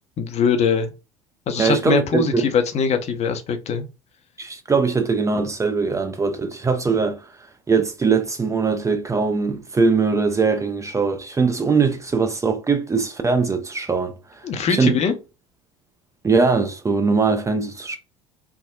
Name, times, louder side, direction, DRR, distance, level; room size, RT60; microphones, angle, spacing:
voice 1, 0.2-0.9 1.5-3.8 14.4-15.1, left 6 dB, 40° left, 0.6 m, -22 dB
voice 2, 1.6-2.4 4.4-7.3 7.7-14.4 14.7-15.0 16.2-18.0, right 4 dB, 20° right, 0.5 m, -21 dB
3.5 x 2.1 x 2.3 m
hypercardioid pair, 65°, 17 cm